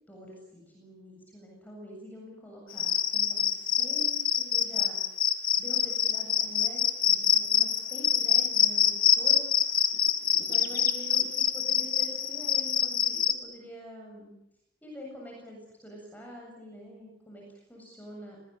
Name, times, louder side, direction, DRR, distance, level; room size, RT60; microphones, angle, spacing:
voice 1, 0.1-5.0 5.6-9.6 10.5-14.3 14.8-18.4, equal, 10° left, -1 dB, 7.7 m, -46 dB
Cricket, 2.7-13.3, left 8 dB, 50° left, 2.0 m, -25 dB
26.5 x 20.0 x 9.2 m, 0.81 s
head